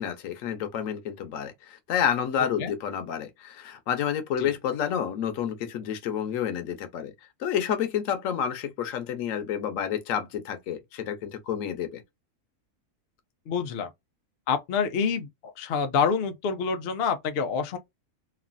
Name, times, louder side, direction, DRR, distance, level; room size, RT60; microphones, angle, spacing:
voice 1, 0.0-7.1 7.4-12.0, left 9 dB, 65° left, 1.0 m, -29 dB
voice 2, 13.5-13.9 14.5-15.3 15.6-17.8, left 6 dB, 80° left, 0.5 m, -27 dB
3.1 x 2.4 x 2.5 m
omnidirectional pair, 1.7 m